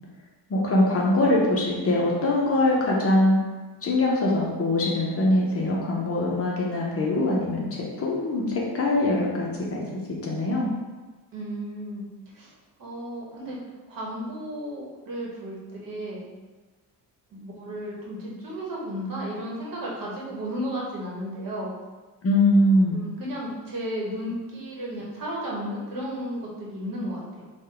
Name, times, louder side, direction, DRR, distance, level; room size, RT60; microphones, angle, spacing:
voice 1, 0.5-3.4 3.8-9.8 10.2-10.7 22.2-23.0, left 1 dB, 35° left, -3 dB, 0.5 m, -22 dB
voice 2, 11.3-12.1 12.3-12.5 12.8-13.6 13.9-15.6 15.8-16.3 17.3-21.7 22.9-27.5, equal, 55° right, -4 dB, 1.1 m, -33 dB
3.7 x 2.2 x 3.3 m, 1.3 s
cardioid pair, 155°, 41 cm